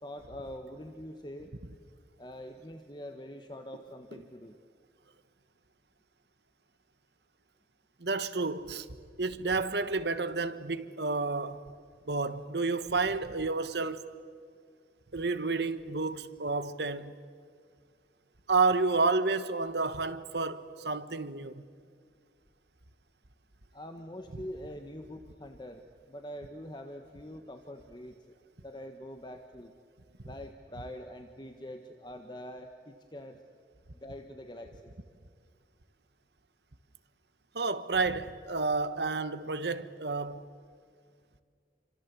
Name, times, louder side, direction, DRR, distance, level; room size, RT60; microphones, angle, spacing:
voice 1, 0.0-1.5 2.2-4.6 23.7-28.3 28.6-29.7 30.2-33.4 34.0-35.0, equal, 25° left, 1.3 m, -44 dB
voice 2, 8.0-8.9 9.2-11.6 12.1-14.1 15.1-17.1 18.5-21.6 37.5-40.4, right 3 dB, 70° right, 1.3 m, -30 dB
28.5 x 25.0 x 8.4 m
head